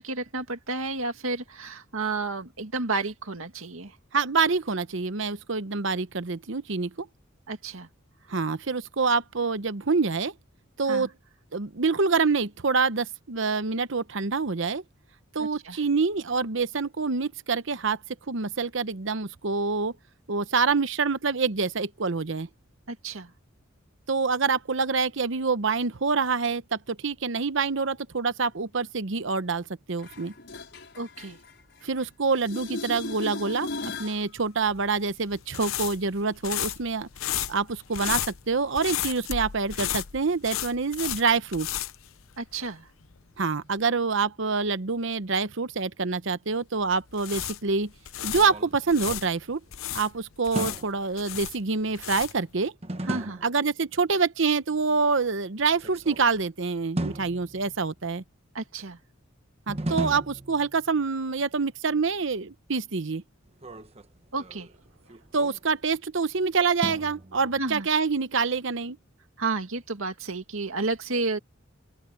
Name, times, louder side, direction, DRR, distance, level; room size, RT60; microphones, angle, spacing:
voice 1, 0.0-3.9 7.5-7.9 10.9-11.1 15.4-15.8 22.9-23.3 31.0-31.4 42.4-42.9 53.1-53.4 58.5-59.0 64.3-64.7 67.6-67.9 69.4-71.4, right 3 dB, 85° right, 2.2 m, -31 dB
voice 2, 4.1-7.1 8.3-10.3 10.8-11.1 11.5-14.8 15.3-18.0 18.3-19.9 20.3-22.5 24.1-30.3 31.8-37.1 37.5-41.7 43.4-47.9 48.2-49.6 49.9-52.7 53.4-58.2 59.7-63.2 65.3-69.0, right 4 dB, 65° right, 0.9 m, -26 dB
sound 1, 30.0-32.0 32.3-34.2 40.0-40.1, left 2 dB, 60° left, 5.9 m, -37 dB
sound 2, 34.7-42.8 43.0-43.2 46.9-49.3 49.7-52.5, left 11 dB, 85° left, 0.8 m, -33 dB
sound 3, 48.2-49.9 50.6-51.2 52.8-53.7 55.7-56.5 57.0-58.1 59.7-61.1 63.5-66.0 66.8-67.8, right 1 dB, 30° right, 1.2 m, -36 dB
open air
head